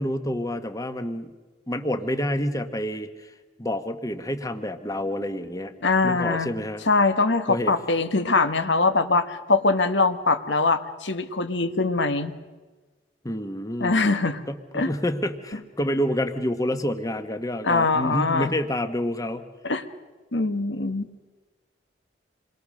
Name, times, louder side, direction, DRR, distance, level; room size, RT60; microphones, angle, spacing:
voice 1, 0.0-1.3 1.7-3.3 3.6-5.7 6.0-6.8 7.5-7.8 13.2-14.0 14.5-19.4, left 1 dB, 20° left, 8 dB, 1.2 m, -28 dB
voice 2, 5.8-6.5 6.9-12.3 13.8-14.4 14.7-14.9 17.6-18.5 19.6-19.8 20.3-21.0, left 3 dB, 80° left, 9 dB, 1.5 m, -22 dB
27.5 x 22.0 x 6.5 m, 1.3 s
head